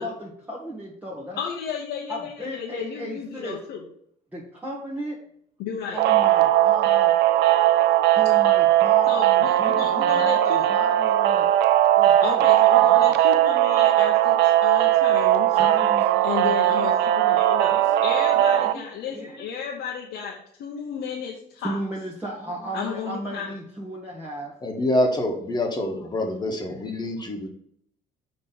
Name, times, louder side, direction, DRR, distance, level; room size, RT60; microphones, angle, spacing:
voice 1, 0.0-1.4 2.1-3.7 4.3-5.2 5.7-7.1 8.1-11.5 12.0-12.5 12.8-13.1 15.5-17.4 17.7-18.8 19.1-19.5 21.6-24.5, right 1 dB, 10° right, -3 dB, 1.2 m, -35 dB
voice 2, 1.4-3.8 5.6-6.0 9.1-10.7 12.2-15.6 16.2-21.8 22.7-23.5, left 7 dB, 80° left, -1 dB, 1.0 m, -33 dB
sound 1, 6.0-18.7, right 13 dB, 80° right, 0.5 m, -19 dB
voice 3, 24.6-27.5, left 1 dB, 25° left, 2 dB, 1.5 m, -26 dB
6.2 x 3.3 x 5.8 m, 0.69 s
cardioid pair, 110°, 17 cm